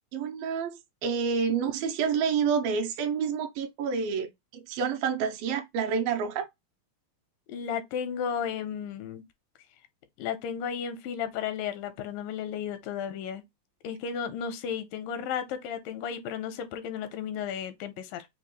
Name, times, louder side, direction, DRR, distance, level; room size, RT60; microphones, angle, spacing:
voice 1, 0.1-6.5, right 6 dB, 85° right, 2.5 m, -28 dB
voice 2, 7.5-9.2 10.2-13.4 13.8-18.3, left 8 dB, 85° left, 2.3 m, -34 dB
5.8 x 2.2 x 3.0 m
omnidirectional pair, 4.0 m